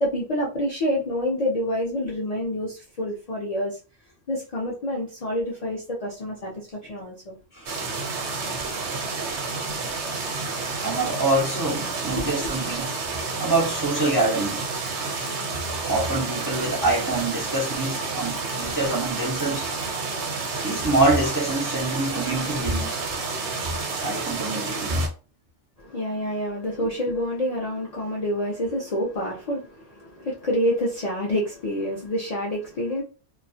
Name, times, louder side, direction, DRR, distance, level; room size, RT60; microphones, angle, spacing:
voice 1, 0.0-3.8 4.3-7.4 12.1-12.5 25.8-33.0, equal, 50° left, 0.4 m, -27 dB
sound 1, 7.7-25.1, right 4 dB, 75° right, 0.9 m, -30 dB
voice 2, 10.8-12.9 13.4-14.6 15.9-19.7 20.6-22.9 24.0-25.1, right 2 dB, 25° right, 0.5 m, -25 dB
2.3 x 2.0 x 2.6 m
omnidirectional pair, 1.2 m